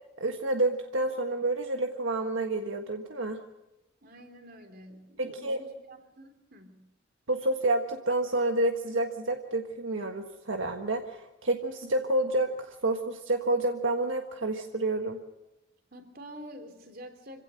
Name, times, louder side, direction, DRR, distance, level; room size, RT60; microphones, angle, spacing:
voice 1, 0.2-3.4 5.2-5.6 7.3-15.2, right 2 dB, 75° right, 4 dB, 1.5 m, -29 dB
voice 2, 4.0-6.9 15.9-17.4, equal, 45° right, 5 dB, 3.2 m, -48 dB
26.0 x 17.0 x 6.4 m, 0.99 s
head